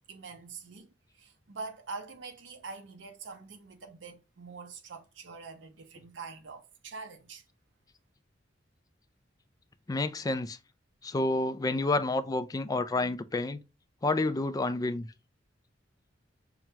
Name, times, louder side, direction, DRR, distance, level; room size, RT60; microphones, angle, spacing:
voice 1, 0.1-7.4, right 4 dB, 70° right, 0.7 m, -44 dB
voice 2, 9.9-10.6 11.0-13.6 14.0-15.1, left 2 dB, 20° left, 0.3 m, -29 dB
5.9 x 2.2 x 2.8 m
head